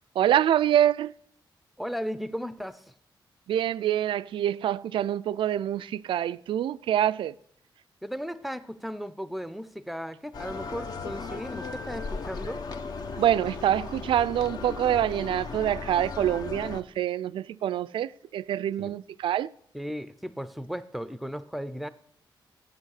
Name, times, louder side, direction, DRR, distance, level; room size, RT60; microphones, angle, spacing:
voice 1, 0.2-1.1 3.5-7.3 13.2-19.5, right 11 dB, 90° right, 0.4 m, -26 dB
voice 2, 1.8-2.9 8.0-12.6 18.8-19.0 19.7-21.9, equal, ahead, 0.6 m, -36 dB
sound 1, 10.3-16.8, left 4 dB, 50° left, 0.9 m, -36 dB
15.0 x 9.3 x 6.6 m
wide cardioid pair, 155°, 9 cm